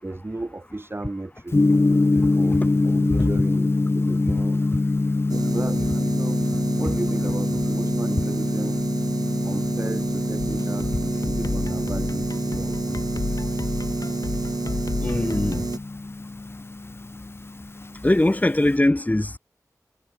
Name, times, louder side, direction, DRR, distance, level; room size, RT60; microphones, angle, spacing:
voice 1, 0.0-1.6 2.3-4.6 5.3-6.4 6.8-8.9 9.4-13.1 14.6-14.8, right 2 dB, 35° right, 5.7 m, -35 dB
Gong, 1.5-18.8, left 2 dB, 40° left, 0.8 m, -25 dB
sound 1, 5.3-15.8, right 4 dB, 80° right, 1.6 m, -29 dB
sound 2, 10.4-15.8, left 3 dB, 65° left, 4.3 m, -32 dB
voice 2, 15.0-15.6 18.0-19.4, left 1 dB, 25° left, 2.5 m, -21 dB
wide cardioid pair, 65°, 6 cm